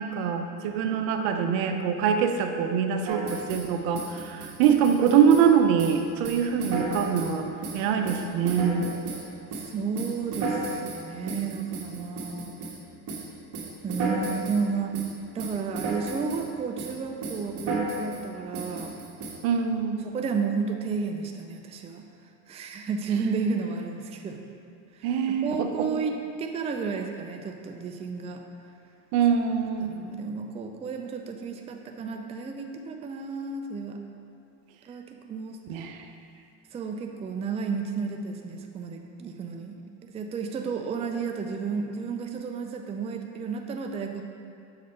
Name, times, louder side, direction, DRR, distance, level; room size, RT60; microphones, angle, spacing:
voice 1, 0.0-7.5 7.7-8.9 14.1-14.2 19.4-20.1 25.0-25.9 29.1-29.9 35.7-36.0, right 7 dB, 70° right, 6 dB, 0.7 m, -24 dB
sound 1, 3.1-3.7 3.9-5.5 5.8-6.0 6.2-7.4 7.6-9.3 9.5-12.8 13.1-13.3 13.5-14.6 14.9-15.1 15.4-16.5 16.8-17.0 17.2-18.2 18.5-19.3, right 3 dB, 55° right, 1.3 m, -33 dB
voice 2, 9.5-12.5 13.8-15.0 15.3-19.0 20.0-22.0 22.5-24.4 24.9-28.5 29.8-34.0 34.8-35.6 36.7-44.2, right 5 dB, 20° right, 4 dB, 0.4 m, -32 dB
6.4 x 3.9 x 4.3 m, 2.5 s
supercardioid pair, 100°, 36 cm